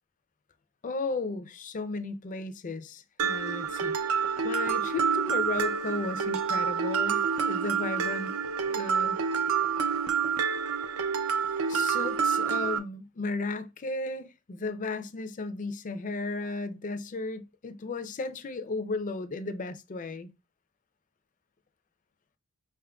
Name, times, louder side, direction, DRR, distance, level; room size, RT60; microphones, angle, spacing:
voice 1, 0.8-8.3 8.6-9.2 11.7-20.3, left 3 dB, 35° left, 0.4 m, -35 dB
Mallet percussion, 3.2-12.8, right 6 dB, 65° right, 0.5 m, -28 dB
5.4 x 3.6 x 2.3 m
head